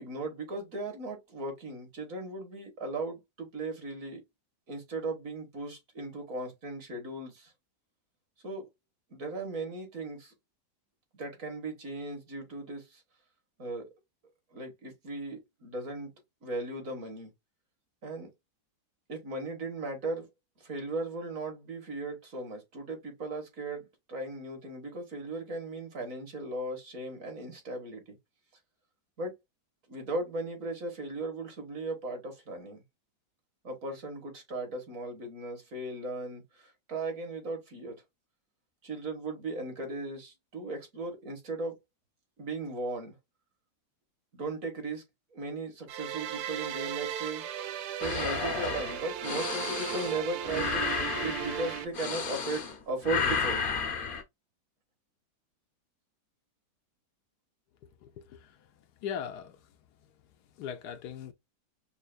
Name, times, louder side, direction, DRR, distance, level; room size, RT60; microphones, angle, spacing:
voice 1, 0.0-4.2 4.7-7.5 8.4-8.7 9.1-10.3 11.1-13.0 13.6-13.9 14.5-16.1 16.4-17.3 18.0-18.3 19.1-20.3 20.6-28.2 29.2-29.3 29.9-32.8 33.6-38.0 38.8-41.8 42.4-43.2 44.3-45.0 45.3-47.4 48.0-50.9 51.2-53.7, right 2 dB, 55° right, 1.7 m, -37 dB
sound 1, 45.9-51.9, right 10 dB, 75° right, 1.1 m, -36 dB
sound 2, 48.0-52.8 53.0-54.2, left 5 dB, 45° left, 0.7 m, -32 dB
voice 2, 58.0-58.4 59.0-59.6 60.6-61.3, left 8 dB, 75° left, 1.1 m, -38 dB
5.6 x 2.4 x 2.4 m
omnidirectional pair, 1.8 m